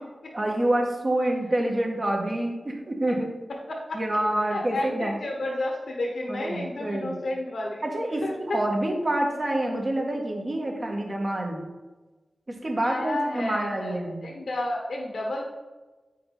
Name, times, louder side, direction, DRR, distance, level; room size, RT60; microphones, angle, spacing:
voice 1, 0.3-3.3 3.9-5.1 6.3-7.2 7.8-11.6 12.5-14.2, right 1 dB, 45° right, 0 dB, 1.8 m, -27 dB
voice 2, 3.7-4.0 4.5-7.8 8.2-8.6 12.8-13.9 14.2-15.4, left 1 dB, 80° left, -1 dB, 1.2 m, -31 dB
8.3 x 5.3 x 4.1 m, 1.2 s
cardioid pair, 55°, 0 cm